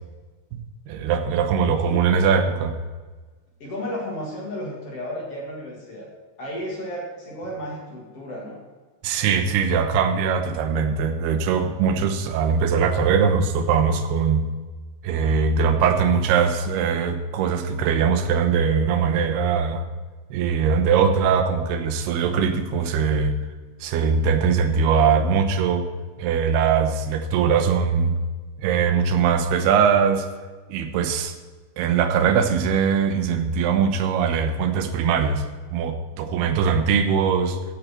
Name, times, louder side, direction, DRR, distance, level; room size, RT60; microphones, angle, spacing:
voice 1, 0.9-2.7 9.0-14.5 15.0-19.8 20.3-23.4 23.8-25.9 26.2-28.2 28.6-30.3 30.7-31.3 31.8-35.4 35.7-37.6, right 6 dB, 85° right, 8 dB, 2.9 m, -21 dB
voice 2, 1.7-2.1 3.6-6.1 6.4-8.6, equal, 40° left, -3 dB, 2.8 m, -33 dB
16.0 x 7.9 x 4.4 m, 1.4 s
omnidirectional pair, 4.5 m